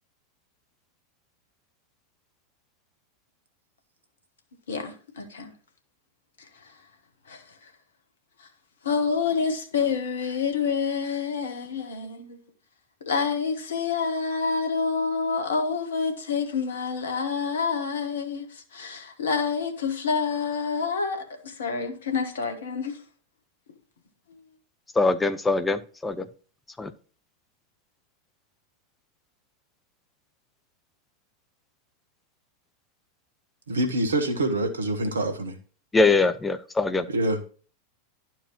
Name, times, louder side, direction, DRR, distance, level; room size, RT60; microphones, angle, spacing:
voice 1, 4.7-5.5 6.6-6.7 7.3-7.7 8.4-8.5 8.8-12.4 13.0-23.0, left 5 dB, 65° left, 1.2 m, -28 dB
voice 2, 25.0-26.3 26.8-26.9 35.9-37.1, left 3 dB, 10° left, 0.5 m, -22 dB
voice 3, 33.7-35.6 37.1-37.5, right 1 dB, 70° right, 1.1 m, -26 dB
11.5 x 4.5 x 3.1 m
figure-of-eight pair, 90°, 0 cm